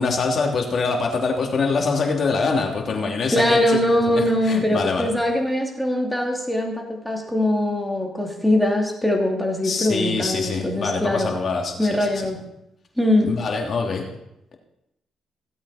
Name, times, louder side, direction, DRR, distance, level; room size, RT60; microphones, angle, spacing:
voice 1, 0.0-3.8 4.1-5.1 9.6-12.1 13.2-14.0, left 4 dB, 50° left, 1 dB, 2.8 m, -24 dB
voice 2, 3.3-11.3 11.8-12.4 13.0-13.3, left 1 dB, 5° left, 0 dB, 2.7 m, -22 dB
16.5 x 8.2 x 4.3 m, 0.84 s
cardioid pair, 90°, 0 cm